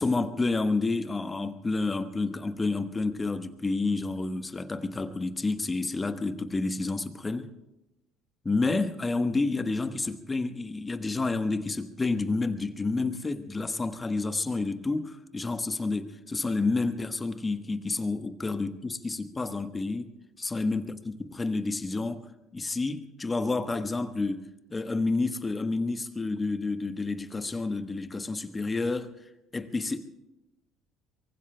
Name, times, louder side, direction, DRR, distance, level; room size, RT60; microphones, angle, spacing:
voice 1, 0.0-7.5 8.4-20.1 20.4-22.3 22.5-29.1 29.5-30.0, left 3 dB, 20° left, 1.2 m, -29 dB
23.5 x 23.5 x 2.2 m
figure-of-eight pair, 60°, 0 cm